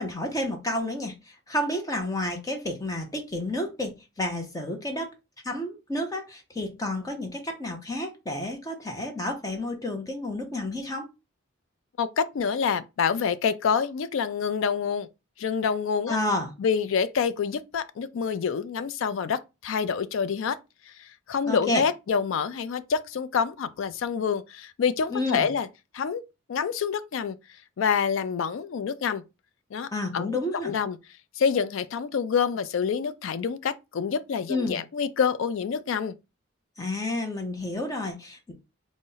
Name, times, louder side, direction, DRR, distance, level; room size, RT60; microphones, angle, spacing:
voice 1, 0.0-3.9 4.2-5.1 5.4-11.1 16.1-16.5 21.4-21.8 25.1-25.5 29.9-30.7 34.5-34.8 36.8-38.5, left 1 dB, 15° left, 0.5 m, -30 dB
voice 2, 12.0-15.1 15.4-16.2 16.6-20.6 21.0-25.7 25.9-26.2 26.5-27.4 27.8-29.2 29.7-30.4 30.6-31.0 31.4-36.2, left 6 dB, 70° left, 0.3 m, -27 dB
4.0 x 2.0 x 3.8 m
head